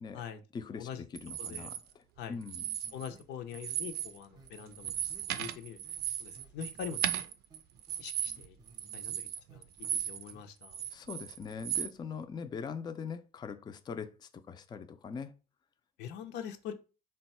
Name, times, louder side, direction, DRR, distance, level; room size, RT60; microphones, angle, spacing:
voice 1, 0.5-2.0 2.3-2.7 10.9-15.3, left 6 dB, 25° left, 0.4 m, -42 dB
sound 1, 1.2-1.8 2.4-3.2 3.5-4.2 4.5-10.3 10.6-11.9, right 10 dB, 70° right, 0.4 m, -36 dB
voice 2, 1.4-1.7 2.2-2.4 2.9-4.9 5.3-5.8 6.2-7.0 8.0-8.6 8.9-9.6 9.9-10.8 16.0-16.7, left 8 dB, 85° left, 0.6 m, -43 dB
sound 2, 2.6-3.2 3.5-3.6 3.9-4.0 4.4-6.0 6.3-7.2 7.5-9.2 9.5-10.0 10.3-10.4, right 3 dB, 25° right, 0.6 m, -59 dB
3.9 x 2.2 x 4.1 m
cardioid pair, 110°, 17 cm